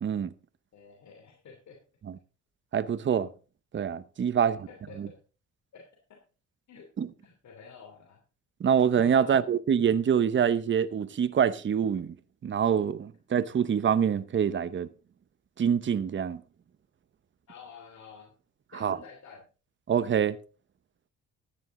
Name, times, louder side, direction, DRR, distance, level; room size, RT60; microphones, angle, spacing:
voice 1, 0.0-0.3 2.7-3.3 3.7-4.6 5.0-5.1 7.0-7.1 8.6-12.1 12.4-14.9 15.6-16.4 18.8-19.0 19.9-20.4, right 8 dB, 40° right, 0.8 m, -25 dB
voice 2, 0.7-1.8 4.4-5.2 5.7-6.0 6.7-6.9 7.2-8.2 9.2-9.4 17.5-18.3 18.7-19.4, left 5 dB, 65° left, 2.9 m, -50 dB
14.0 x 9.3 x 3.8 m
cardioid pair, 90°, 30 cm